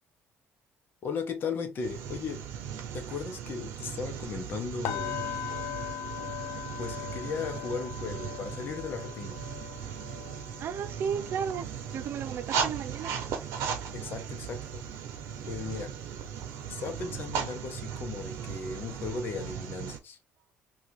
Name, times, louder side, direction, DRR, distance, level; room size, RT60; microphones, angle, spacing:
voice 1, 1.0-2.4 2.9-5.2 6.8-9.4 13.9-14.8 15.4-15.9 16.7-20.2, left 5 dB, 55° left, 0.8 m, -36 dB
sound 1, 1.8-20.0, right 7 dB, 90° right, 0.7 m, -37 dB
sound 2, 4.8-14.8 15.1-15.4 15.8-16.0, left 12 dB, 90° left, 0.4 m, -41 dB
voice 2, 10.6-11.7 11.9-13.1, right 7 dB, 60° right, 0.4 m, -33 dB
2.8 x 2.4 x 3.8 m
cardioid pair, 105°, 4 cm